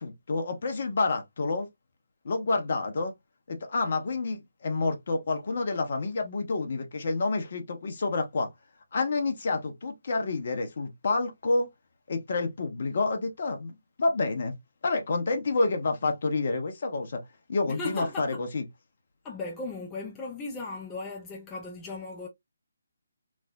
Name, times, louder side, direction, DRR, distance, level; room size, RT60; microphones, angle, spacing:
voice 1, 0.0-1.7 2.2-3.1 3.5-8.5 8.9-11.7 12.1-14.5 14.8-17.2 17.5-18.6, left 3 dB, 45° left, 0.8 m, -28 dB
voice 2, 17.7-18.4 19.2-22.3, left 2 dB, 15° left, 0.4 m, -37 dB
3.2 x 2.1 x 2.5 m
figure-of-eight pair, 145°, 0 cm